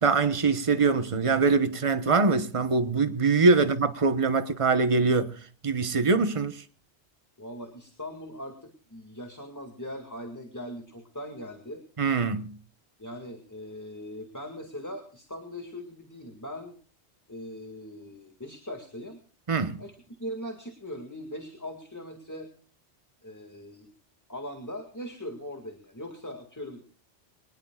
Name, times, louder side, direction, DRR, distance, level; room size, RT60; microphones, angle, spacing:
voice 1, 0.0-5.4 5.6-6.6 12.0-12.6 19.5-19.8, right 4 dB, 30° right, 1.1 m, -23 dB
voice 2, 7.4-11.8 13.0-16.8 17.3-19.2 19.8-22.5 23.2-23.9 24.3-26.9, equal, 15° left, 2.1 m, -40 dB
23.5 x 19.5 x 2.4 m
omnidirectional pair, 1.2 m